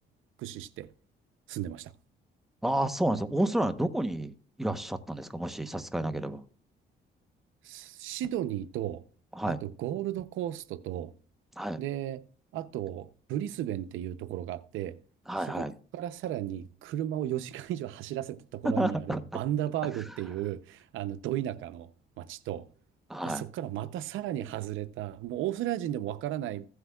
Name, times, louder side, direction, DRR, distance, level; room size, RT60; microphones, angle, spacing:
voice 1, 0.4-0.9 1.5-1.9 7.6-9.0 9.5-11.1 11.8-12.2 12.5-15.0 15.4-15.7 15.9-21.9 22.2-22.7 23.2-26.7, right 12 dB, 85° right, 0.7 m, -34 dB
voice 2, 2.6-6.4 9.4-9.6 11.6-11.8 15.3-15.7 18.8-19.2 23.1-23.4, right 1 dB, ahead, 0.9 m, -30 dB
15.5 x 8.0 x 2.3 m
cardioid pair, 90°, 20 cm